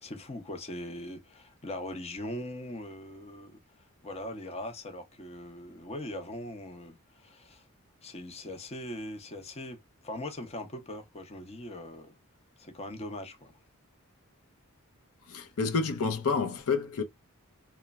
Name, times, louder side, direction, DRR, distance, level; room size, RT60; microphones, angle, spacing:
voice 1, 0.0-3.6 4.0-7.6 8.0-12.2 12.6-13.5, left 1 dB, 30° left, 0.7 m, -41 dB
voice 2, 15.3-17.0, left 4 dB, 75° left, 0.6 m, -29 dB
3.0 x 2.2 x 2.2 m
head